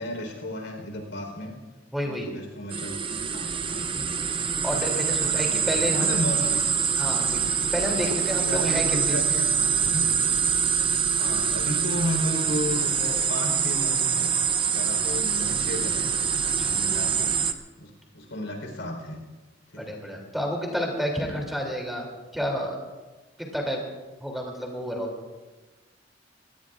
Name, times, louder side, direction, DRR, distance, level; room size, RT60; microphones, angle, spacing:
voice 1, 0.0-1.5 2.0-3.9 5.2-6.7 8.3-10.4 11.1-14.3 14.6-16.1 16.6-17.3 17.8-19.2 19.7-20.0, left 1 dB, 80° left, 3 dB, 4.1 m, -33 dB
voice 2, 1.9-2.3 4.0-4.1 4.6-6.1 7.0-7.4 7.7-9.2 16.6-16.8 19.8-22.8 23.4-23.8 24.2-25.1, equal, ahead, 0 dB, 2.9 m, -30 dB
sound 1, 2.7-17.5, right 6 dB, 25° right, 0.6 m, -25 dB
25.0 x 18.5 x 2.5 m, 1.2 s
head